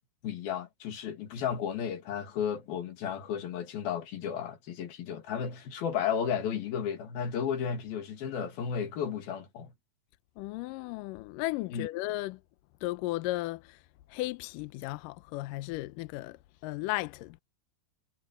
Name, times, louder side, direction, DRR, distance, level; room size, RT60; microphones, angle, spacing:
voice 1, 0.2-9.7 11.7-11.9, left 8 dB, 65° left, 4.1 m, -33 dB
voice 2, 10.4-12.4 12.8-13.8 14.1-17.4, left 19 dB, 90° left, 1.9 m, -35 dB
omnidirectional pair, 4.6 m